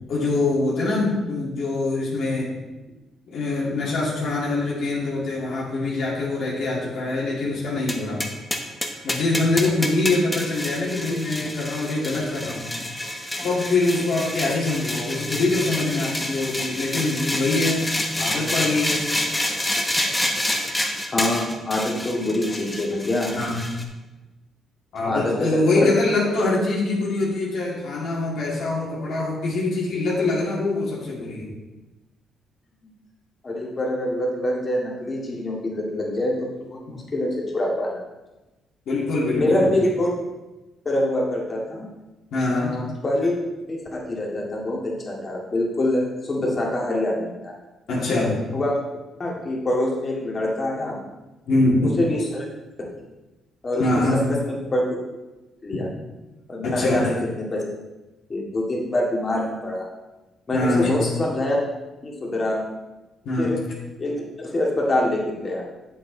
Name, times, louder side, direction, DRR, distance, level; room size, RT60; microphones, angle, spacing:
voice 1, 0.1-2.5 3.3-8.2 9.0-12.6 13.4-17.8 18.2-19.1 23.3-23.6 24.9-31.5 36.9-37.0 38.9-39.7 42.3-42.8 47.9-48.4 51.5-51.9 53.8-54.2 56.6-57.1 60.5-61.1 63.2-63.6, left 2 dB, 70° left, -5 dB, 2.4 m, -24 dB
sound 1, 7.9-23.8, left 1 dB, 10° left, 1.1 m, -28 dB
voice 2, 21.1-23.3 25.0-25.9 33.4-38.0 39.3-40.1 40.8-41.9 42.5-47.6 48.5-48.8 49.2-51.0 51.8-52.4 53.6-54.8 55.6-55.9 56.5-57.6 58.3-59.9 60.5-61.6 62.0-62.6 63.4-63.6 64.0-65.6, left 1 dB, 35° left, -2 dB, 2.3 m, -25 dB
8.0 x 7.6 x 4.0 m, 1.1 s
cardioid pair, 100°, 0 cm